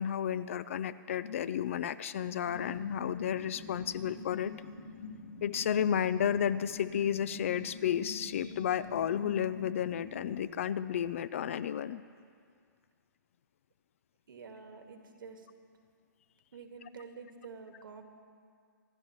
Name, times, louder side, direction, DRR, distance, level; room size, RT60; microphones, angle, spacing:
voice 1, 0.0-4.5 5.4-12.0, left 9 dB, 40° left, 16 dB, 0.4 m, -32 dB
sound 1, 2.5-10.4, left 3 dB, 65° left, 3.3 m, -46 dB
voice 2, 14.3-15.5 16.5-18.0, right 5 dB, 80° right, 4 dB, 1.8 m, -48 dB
26.0 x 12.5 x 3.1 m, 2.2 s
hypercardioid pair, 165°, 11 cm